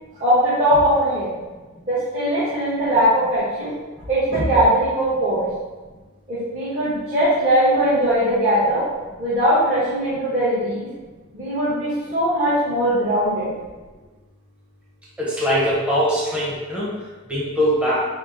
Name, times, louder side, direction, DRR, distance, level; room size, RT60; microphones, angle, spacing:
voice 1, 0.2-1.3 1.9-3.7 4.1-5.5 6.3-8.8 9.2-10.9 11.3-13.5, equal, 35° right, -12 dB, 1.2 m, -20 dB
voice 2, 15.2-16.9 17.3-18.1, equal, 5° right, -8 dB, 0.9 m, -21 dB
5.7 x 2.1 x 3.8 m, 1.3 s
head